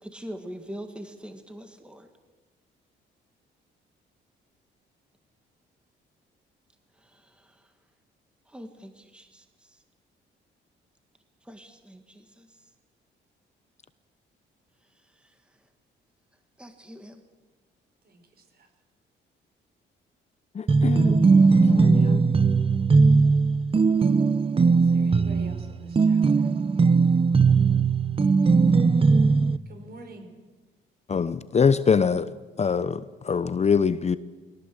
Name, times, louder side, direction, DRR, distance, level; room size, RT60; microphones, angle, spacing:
voice 1, 0.0-2.1 7.0-7.7 8.5-9.8 11.4-12.6 15.0-15.3 16.6-17.2, equal, 5° right, 2.0 m, -43 dB
voice 2, 18.0-18.7 24.8-26.5 29.7-30.3, right 2 dB, 50° right, 5.4 m, -46 dB
voice 3, 20.5-21.3 21.6-22.2 31.1-32.3 32.6-34.2, left 6 dB, 35° left, 0.8 m, -24 dB
sound 1, 20.7-29.6, right 4 dB, 30° right, 0.8 m, -19 dB
22.0 x 18.0 x 8.0 m
cardioid pair, 90°, 20 cm